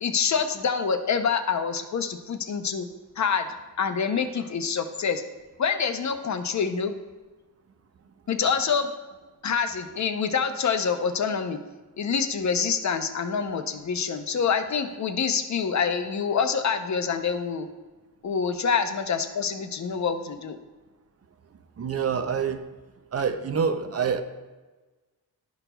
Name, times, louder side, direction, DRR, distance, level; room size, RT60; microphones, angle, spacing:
voice 1, 0.0-2.9 3.2-3.5 3.8-5.2 5.6-6.9 8.3-8.9 9.4-11.6 12.0-17.7 18.2-20.6, left 6 dB, 45° left, 8 dB, 0.6 m, -26 dB
voice 2, 21.8-22.6 23.1-24.2, right 6 dB, 40° right, 9 dB, 0.5 m, -26 dB
11.0 x 6.0 x 2.2 m, 1.2 s
wide cardioid pair, 130°, 39 cm